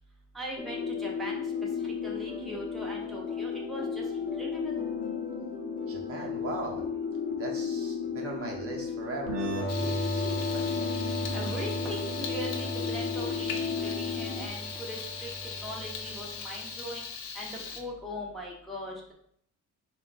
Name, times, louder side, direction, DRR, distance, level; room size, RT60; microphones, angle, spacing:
voice 1, 0.3-4.8 11.3-15.3 15.6-17.1 17.3-19.1, equal, ahead, -3 dB, 0.7 m, -40 dB
sound 1, 0.6-14.5, left 6 dB, 25° left, 0.9 m, -34 dB
voice 2, 5.9-6.9 7.4-10.9, right 3 dB, 45° right, -1 dB, 0.7 m, -39 dB
sound 2, 9.3-16.7, equal, 85° right, 0.7 m, -36 dB
Frying (food), 9.7-17.8, left 5 dB, 75° left, 0.6 m, -40 dB
3.6 x 2.3 x 3.8 m, 0.67 s
cardioid pair, 115°, 33 cm